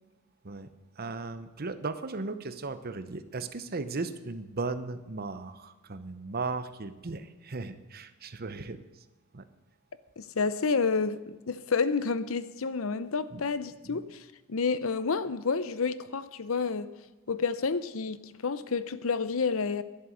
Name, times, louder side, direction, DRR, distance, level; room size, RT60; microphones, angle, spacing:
voice 1, 1.0-8.9 9.3-9.5 13.3-13.4 13.8-14.0, right 3 dB, 45° right, 0.8 m, -36 dB
voice 2, 10.2-16.9 17.3-19.8, left 4 dB, 75° left, 0.7 m, -30 dB
11.5 x 11.0 x 6.5 m
head